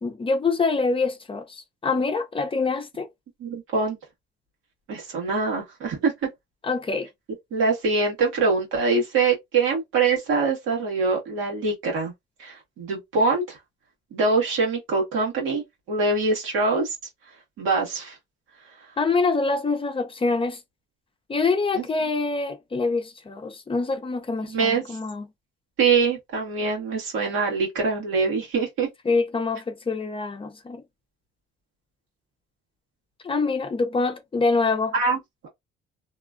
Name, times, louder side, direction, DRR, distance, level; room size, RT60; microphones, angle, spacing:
voice 1, 0.0-3.1 6.6-7.1 19.0-20.6 21.3-25.3 29.1-30.8 33.2-34.9, left 4 dB, 25° left, 0.6 m, -25 dB
voice 2, 3.4-4.0 4.9-6.1 7.5-12.1 12.4-13.6 14.1-15.6 15.9-16.9 17.6-18.1 21.7-21.9 24.5-25.0 25.8-28.9 34.9-35.2, right 4 dB, 85° right, 1.5 m, -24 dB
2.9 x 2.3 x 2.5 m
cardioid pair, 90°, 20 cm